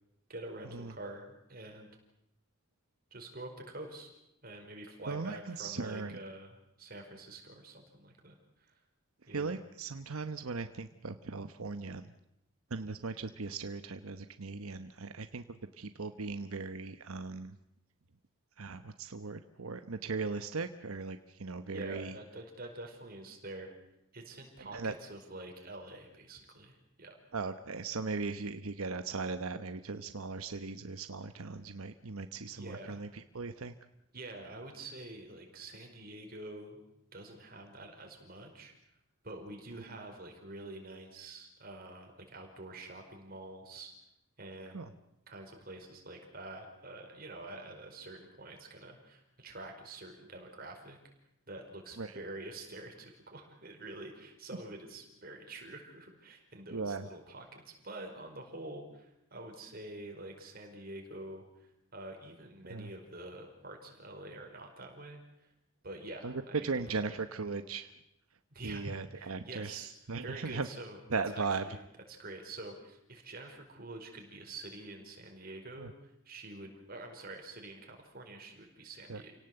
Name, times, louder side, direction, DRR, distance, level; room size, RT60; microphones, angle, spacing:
voice 1, 0.3-2.0 3.1-4.1 4.4-8.7 9.3-9.6 21.7-23.7 24.1-27.1 32.4-33.0 34.1-36.8 37.1-38.7 39.2-43.9 44.4-44.9 45.3-51.0 51.5-65.5 65.8-67.0 68.5-69.9 70.2-79.4, right 2 dB, 45° right, 3 dB, 5.0 m, -47 dB
voice 2, 5.1-6.2 9.3-12.1 12.7-15.4 15.8-17.5 18.6-22.1 24.7-24.9 27.3-33.7 44.7-44.9 52.0-52.1 56.7-57.0 62.7-62.9 66.2-66.3 66.6-67.9 68.6-70.7 71.1-71.6 75.8-75.9 79.1-79.2, right 4 dB, 90° right, 9 dB, 1.0 m, -38 dB
28.5 x 18.0 x 7.9 m, 0.85 s
head